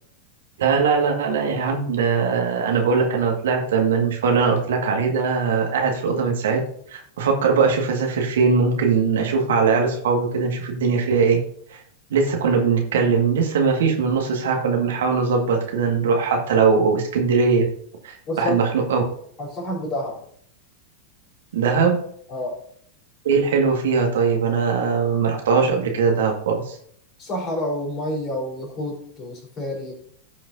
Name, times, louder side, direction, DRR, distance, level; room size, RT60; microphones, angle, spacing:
voice 1, 0.6-6.6 6.9-11.4 11.7-11.8 12.1-17.7 18.0-19.0 21.5-22.0 23.2-26.8, right 5 dB, 60° right, 2 dB, 1.8 m, -20 dB
voice 2, 18.3-18.6 19.4-20.2 22.3-22.6 27.2-29.9, left 1 dB, 30° left, -1 dB, 3.9 m, -28 dB
17.0 x 5.8 x 2.7 m, 0.65 s
figure-of-eight pair, 90°, 0 cm